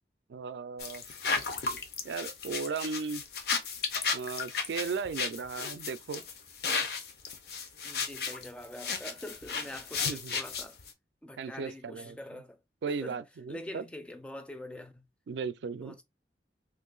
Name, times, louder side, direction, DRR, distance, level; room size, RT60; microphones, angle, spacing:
voice 1, 0.3-1.0 2.0-3.2 4.1-6.2 10.1-10.3 11.4-12.2 12.8-13.8 15.3-16.0, right 5 dB, 80° right, 0.4 m, -36 dB
sound 1, 0.8-10.9, left 5 dB, 60° left, 0.6 m, -34 dB
voice 2, 7.8-10.8 11.2-12.6 12.9-13.2 13.5-15.1 15.8-16.0, left 1 dB, 5° left, 0.3 m, -44 dB
2.7 x 2.5 x 3.8 m
head